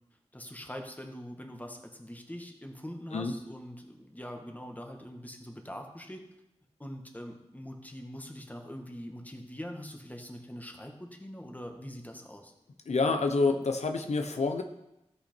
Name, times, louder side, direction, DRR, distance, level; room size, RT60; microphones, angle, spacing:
voice 1, 0.3-6.2 6.8-12.5, equal, 15° left, 3 dB, 1.5 m, -43 dB
voice 2, 12.9-14.6, left 3 dB, 90° left, 6 dB, 0.8 m, -27 dB
15.0 x 5.7 x 4.5 m, 0.87 s
wide cardioid pair, 75°, 11 cm